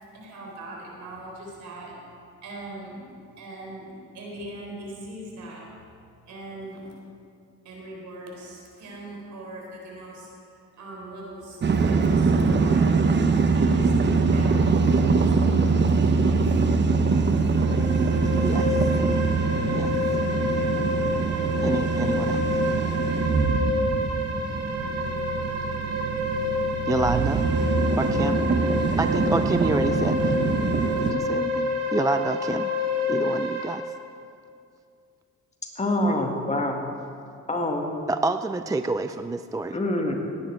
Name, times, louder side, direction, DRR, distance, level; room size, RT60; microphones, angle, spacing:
voice 1, 0.1-2.0 2.4-3.0 3.4-5.8 6.3-6.8 7.6-12.9 13.5-14.6 14.9-16.6, right 1 dB, 75° right, -2 dB, 4.0 m, -41 dB
sound 1, 11.6-31.1, right 4 dB, 35° right, 1.0 m, -23 dB
sound 2, 17.4-33.7, left 3 dB, 60° right, 2.0 m, -28 dB
voice 2, 18.4-18.8 19.7-19.9 21.6-22.4 26.9-27.5 28.0-28.4 29.0-30.4 31.0-32.7 33.1-33.8 36.0-36.2 38.1-39.8, right 3 dB, 10° right, 10 dB, 0.3 m, -28 dB
voice 3, 35.8-36.8 37.5-38.0 39.7-40.1, left 2 dB, 25° left, 1 dB, 1.9 m, -26 dB
18.0 x 9.5 x 4.6 m, 2.4 s
cardioid pair, 90°, 30 cm